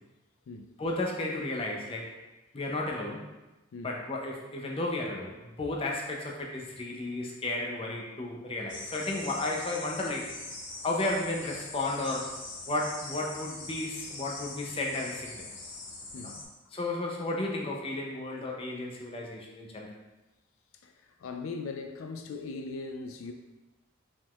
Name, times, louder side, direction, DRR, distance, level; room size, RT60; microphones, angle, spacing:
voice 1, 0.8-2.1 2.5-3.2 3.8-10.3 10.8-12.3 12.7-15.5 16.2-16.3 16.7-19.9, left 2 dB, 25° left, 0.5 m, -33 dB
sound 1, 8.7-16.5, left 3 dB, 60° left, 0.8 m, -42 dB
voice 2, 20.8-23.3, left 3 dB, 80° left, 0.4 m, -39 dB
5.1 x 3.6 x 2.3 m
head